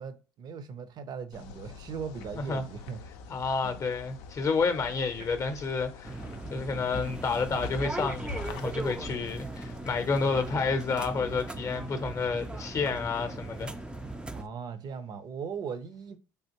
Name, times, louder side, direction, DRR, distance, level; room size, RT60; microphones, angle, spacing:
voice 1, 0.0-3.0 3.6-3.9 4.8-4.9 5.6-5.7 14.3-16.2, right 6 dB, 50° right, 0.6 m, -39 dB
sound 1, 1.3-14.5, left 4 dB, 75° left, 0.4 m, -46 dB
voice 2, 3.3-6.2 6.5-13.7, left 4 dB, 35° left, 0.7 m, -30 dB
sound 2, 6.0-14.4, right 2 dB, 10° right, 0.3 m, -38 dB
3.4 x 2.4 x 2.9 m
hypercardioid pair, 70°, 9 cm